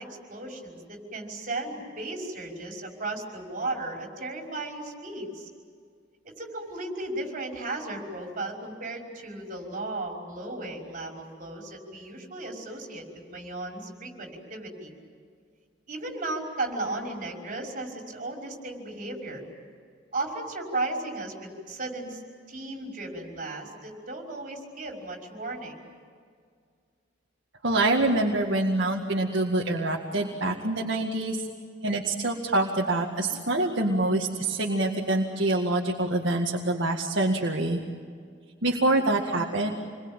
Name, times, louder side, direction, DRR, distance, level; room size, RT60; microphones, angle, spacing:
voice 1, 0.0-5.5 6.2-14.9 15.9-19.4 20.1-22.2 22.5-25.8, right 2 dB, 45° right, 0 dB, 5.7 m, -35 dB
voice 2, 27.6-31.4 31.8-37.8 38.6-39.7, right 2 dB, 65° right, -1 dB, 2.0 m, -25 dB
28.5 x 22.0 x 9.0 m, 2.1 s
head